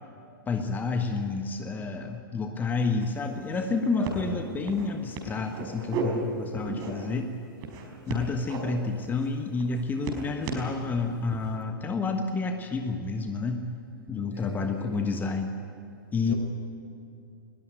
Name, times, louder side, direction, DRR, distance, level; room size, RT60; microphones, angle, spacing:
voice 1, 0.5-7.3 8.1-13.7 14.1-15.5 16.1-16.3, left 4 dB, 15° left, 6 dB, 1.3 m, -29 dB
sound 1, 3.0-3.1 3.4-3.7 4.0-4.2 4.7-4.9 5.1-6.0 6.5-7.2 7.6-8.6 9.0-9.3 9.6-10.7 11.3-11.6, right 5 dB, 35° right, 4.8 m, -35 dB
voice 2, 4.0-4.4 14.3-14.9 16.3-16.4, right 1 dB, 90° right, 2 dB, 5.6 m, -39 dB
20.5 x 20.5 x 9.5 m, 2.6 s
figure-of-eight pair, 105°, 12 cm